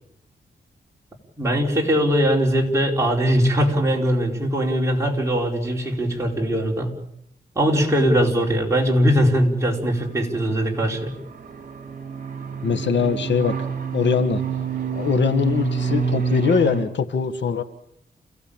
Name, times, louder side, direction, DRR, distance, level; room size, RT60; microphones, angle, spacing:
voice 1, 1.4-6.9 7.5-11.1, equal, 15° right, -1 dB, 4.6 m, -20 dB
sound 1, 9.8-16.8, right 5 dB, 45° right, 4.7 m, -28 dB
voice 2, 12.6-13.6 13.9-14.4 14.9-17.6, left 6 dB, 80° left, 8 dB, 1.5 m, -22 dB
29.0 x 16.5 x 8.8 m, 0.79 s
wide cardioid pair, 125°, 18 cm